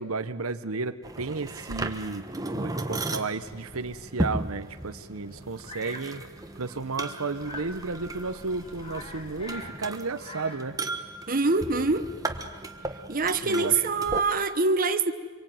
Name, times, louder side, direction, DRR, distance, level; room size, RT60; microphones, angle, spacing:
voice 1, 0.0-2.3 2.5-6.3 6.6-10.8 13.4-13.8, right 3 dB, 85° right, 10 dB, 1.0 m, -33 dB
sound 1, 1.0-14.2, right 2 dB, 15° right, 1.3 m, -36 dB
sound 2, 3.4-9.5, left 1 dB, 75° left, 7.1 m, -50 dB
Bird vocalization bird call bird song, 5.6-6.1 7.4-7.8 8.3-8.4 8.6-9.8 10.1-10.7, left 1 dB, 25° left, 2.6 m, -43 dB
voice 2, 11.3-12.1 13.1-15.1, right 3 dB, 40° right, 8 dB, 1.1 m, -24 dB
25.5 x 23.5 x 9.3 m, 1.5 s
head